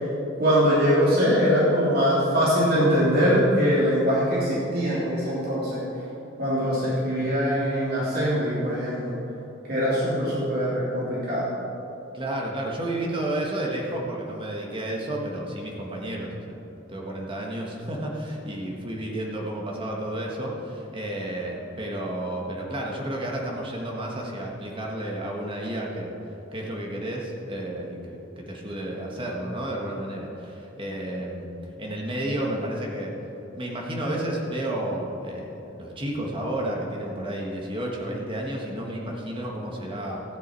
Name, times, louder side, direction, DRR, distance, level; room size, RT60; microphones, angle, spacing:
voice 1, 0.4-5.8 6.4-9.2 9.7-11.5, equal, 50° right, -8 dB, 3.2 m, -22 dB
voice 2, 12.1-16.6 16.9-26.1 26.5-31.5 31.8-33.1 33.5-40.2, right 1 dB, 25° right, -1 dB, 1.5 m, -31 dB
14.5 x 9.7 x 4.6 m, 3.0 s
head